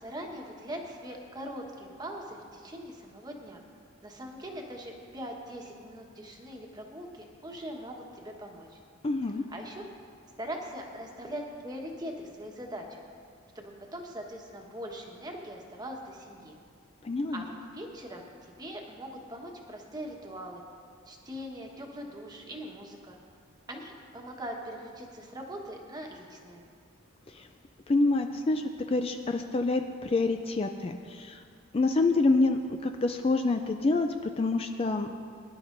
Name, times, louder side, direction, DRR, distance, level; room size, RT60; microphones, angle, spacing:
voice 1, 0.0-3.6 4.0-8.8 9.5-9.8 10.4-13.0 13.5-16.6 17.3-20.6 21.1-23.2 23.7-26.6, equal, 20° right, 1 dB, 1.2 m, -41 dB
voice 2, 9.0-9.4 17.0-17.4 27.3-27.5 27.9-31.4 31.7-34.1 34.4-35.1, left 3 dB, 30° left, 5 dB, 0.4 m, -27 dB
22.0 x 11.0 x 2.6 m, 2.2 s
head